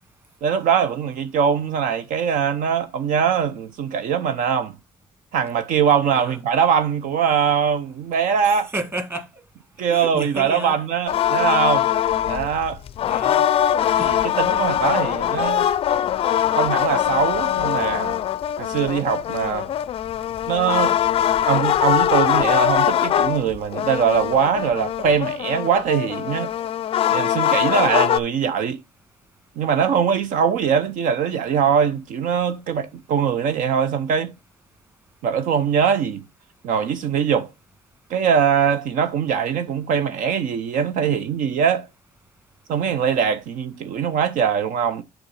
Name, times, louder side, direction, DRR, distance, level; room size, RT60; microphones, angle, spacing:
voice 1, 0.4-4.8 5.3-8.7 9.8-11.9 12.3-12.8 14.0-15.7 16.5-18.2 18.6-19.7 20.5-21.0 21.5-26.5 27.1-28.8 29.6-34.3 35.2-36.2 36.6-37.5 38.1-41.9 42.7-45.0, right 7 dB, 70° right, 0.8 m, -22 dB
voice 2, 8.4-9.4 9.9-10.8 13.0-13.5 14.0-14.2, right 1 dB, 15° right, 1.7 m, -32 dB
sound 1, 11.1-28.2, left 10 dB, 40° left, 0.4 m, -22 dB
7.2 x 3.9 x 5.5 m
cardioid pair, 145°, 14 cm